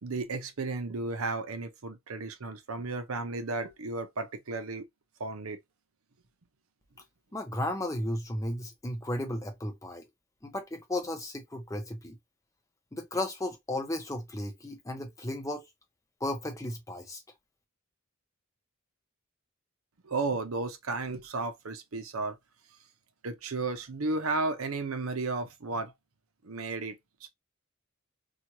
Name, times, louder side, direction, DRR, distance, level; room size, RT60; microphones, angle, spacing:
voice 1, 0.0-4.9 5.2-5.6 20.0-22.4 23.2-25.9 26.4-27.3, right 3 dB, 90° right, 0.7 m, -33 dB
voice 2, 7.3-10.0 10.4-12.2 12.9-15.7 16.2-17.2, left 1 dB, 15° left, 0.6 m, -34 dB
3.0 x 2.4 x 2.9 m
head